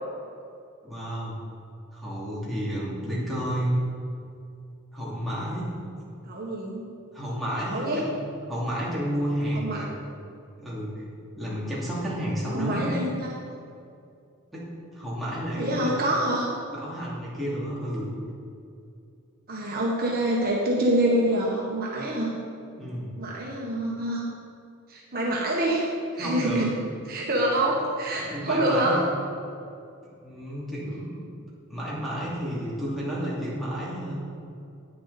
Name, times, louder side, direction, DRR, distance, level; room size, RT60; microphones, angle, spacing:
voice 1, 0.8-1.4 1.9-3.8 4.9-5.7 7.1-8.2 8.5-9.9 10.6-11.0 11.4-12.9 14.5-15.9 16.7-18.1 22.8-23.2 26.2-26.7 28.2-29.1 30.2-31.2 31.7-34.2, equal, ahead, -7 dB, 2.7 m, -31 dB
voice 2, 6.2-6.8 7.7-8.0 9.5-9.8 12.5-13.3 15.5-16.5 19.5-22.4 23.2-24.2 24.9-25.9 26.2-26.7 27.1-29.0, right 1 dB, 45° right, -4 dB, 1.5 m, -26 dB
10.5 x 9.5 x 4.2 m, 2.5 s
head